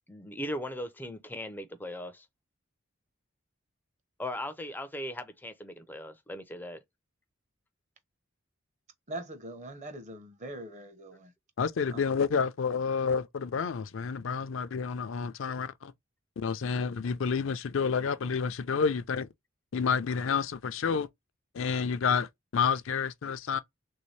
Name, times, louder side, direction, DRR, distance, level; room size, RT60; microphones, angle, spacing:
voice 1, 0.1-2.3 4.2-6.8, left 1 dB, 10° left, 0.4 m, -38 dB
voice 2, 9.1-11.3 11.9-12.0, right 1 dB, 35° right, 0.7 m, -42 dB
voice 3, 11.6-15.9 16.4-19.3 19.7-21.1 21.5-23.6, left 6 dB, 65° left, 0.4 m, -29 dB
3.4 x 2.7 x 3.1 m
head